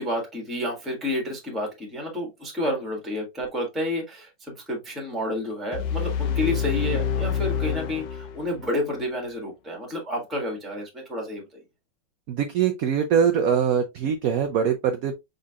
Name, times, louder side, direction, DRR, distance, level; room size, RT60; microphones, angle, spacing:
voice 1, 0.0-11.6, left 1 dB, ahead, 1.4 m, -30 dB
sound 1, 5.7-8.8, left 8 dB, 70° left, 1.3 m, -27 dB
voice 2, 12.3-15.1, right 7 dB, 80° right, 0.7 m, -23 dB
5.4 x 3.9 x 2.3 m
omnidirectional pair, 2.1 m